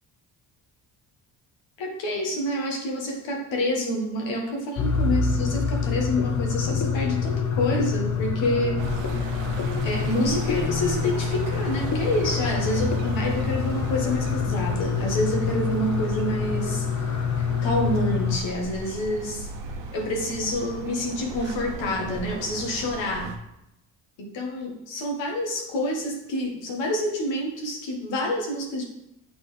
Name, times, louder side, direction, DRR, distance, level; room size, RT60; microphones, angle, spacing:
voice 1, 1.8-8.9 9.8-16.8 17.6-19.5 19.9-23.3 24.2-28.8, left 1 dB, 75° left, 0 dB, 1.7 m, -27 dB
sound 1, 4.8-18.4, left 6 dB, 40° left, 0.8 m, -26 dB
sound 2, 8.8-23.4, right 4 dB, 70° right, 0.9 m, -36 dB
8.0 x 4.0 x 3.4 m, 0.84 s
cardioid pair, 80°, 45 cm